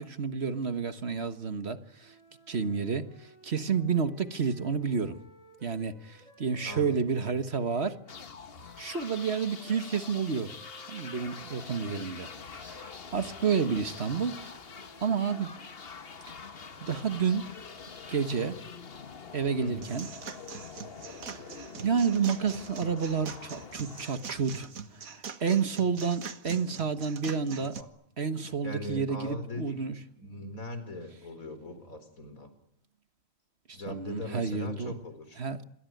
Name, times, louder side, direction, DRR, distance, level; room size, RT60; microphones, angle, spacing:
voice 1, 0.0-2.1 2.5-5.2 5.6-8.0 8.8-10.5 10.9-14.5 15.0-15.5 16.8-17.5 18.1-18.6 19.3-20.1 21.3-21.4 21.8-27.8 28.2-30.0 33.7-34.9 35.4-35.6, right 6 dB, 50° right, 1.6 m, -30 dB
sound 1, 2.0-8.1 8.6-15.3, equal, 30° left, 6.5 m, -57 dB
voice 2, 6.6-7.2 19.6-19.9 27.6-27.9 28.6-32.5 33.7-35.4, left 1 dB, 80° left, 4.6 m, -41 dB
sound 2, 8.1-24.8, left 5 dB, 45° left, 1.4 m, -45 dB
sound 3, 19.8-27.8, right 6 dB, 85° right, 1.9 m, -43 dB
27.0 x 22.5 x 9.3 m
omnidirectional pair, 1.4 m